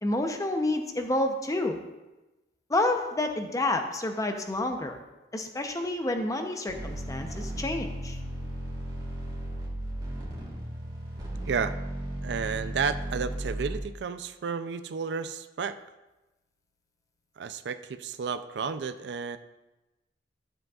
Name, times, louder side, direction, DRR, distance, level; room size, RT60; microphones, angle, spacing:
voice 1, 0.0-1.8 2.7-5.0 5.3-8.2, left 2 dB, 20° left, 5 dB, 0.6 m, -29 dB
sound 1, 6.7-13.8, right 1 dB, 25° right, 1.8 m, -35 dB
voice 2, 12.2-15.8 17.4-19.4, right 6 dB, 70° right, 12 dB, 0.4 m, -32 dB
12.0 x 7.6 x 2.4 m, 1.0 s
head